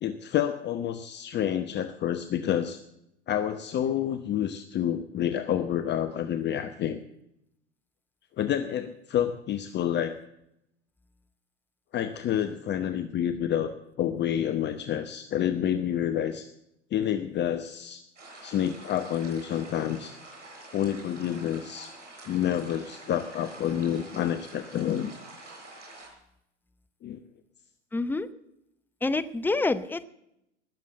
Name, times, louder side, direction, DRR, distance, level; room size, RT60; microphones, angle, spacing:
voice 1, 0.0-2.8 3.3-7.0 8.4-10.2 11.9-16.5 16.9-18.0 18.4-20.2 20.7-21.9 22.3-25.1 27.0-27.2, left 10 dB, 30° left, 10 dB, 1.0 m, -28 dB
sound 1, 18.2-26.1, right 2 dB, 80° right, 7.2 m, -47 dB
voice 2, 27.9-28.3 29.0-30.0, left 3 dB, 5° left, 12 dB, 0.8 m, -27 dB
20.0 x 7.5 x 8.7 m, 0.81 s
hypercardioid pair, 95°, 36 cm